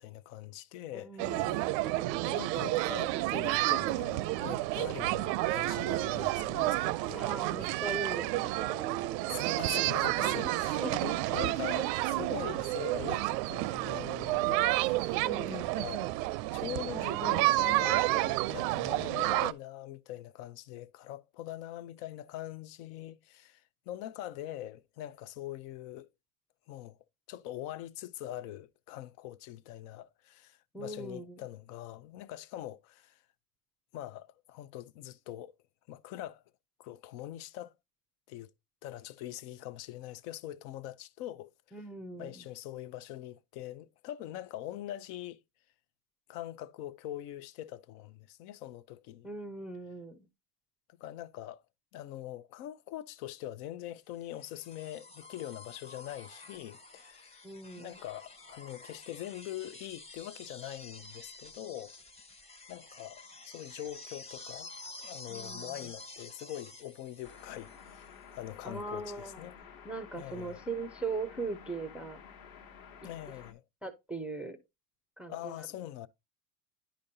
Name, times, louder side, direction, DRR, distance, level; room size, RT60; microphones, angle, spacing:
voice 1, 0.0-1.7 2.2-7.2 7.6-7.7 9.3-16.1 16.5-26.1 26.7-27.0 27.3-33.2 33.9-35.5 35.9-36.4 36.8-37.7 38.3-38.5 38.8-41.8 42.2-45.4 46.3-49.3 51.0-51.6 51.9-57.4 57.8-61.9 62.7-64.7 65.0-69.6 70.1-70.6 73.0-73.6 75.3-76.1, left 13 dB, 75° left, 0.7 m, -43 dB
voice 2, 0.9-1.7 7.1-8.9 10.3-10.5 10.8-11.0 15.2-15.8 30.7-31.4 41.7-42.4 49.2-50.2 57.4-58.0 65.3-65.7 68.6-69.4 69.8-72.2 73.0-73.1 73.8-74.6 75.2-75.5, right 3 dB, 5° right, 0.4 m, -40 dB
sound 1, 1.2-19.5, right 18 dB, 90° right, 0.6 m, -30 dB
sound 2, 54.1-68.2 69.6-69.7, left 3 dB, 15° left, 0.8 m, -50 dB
sound 3, 67.2-73.5, left 7 dB, 45° left, 1.1 m, -52 dB
10.0 x 5.2 x 2.7 m
supercardioid pair, 130°, 48 cm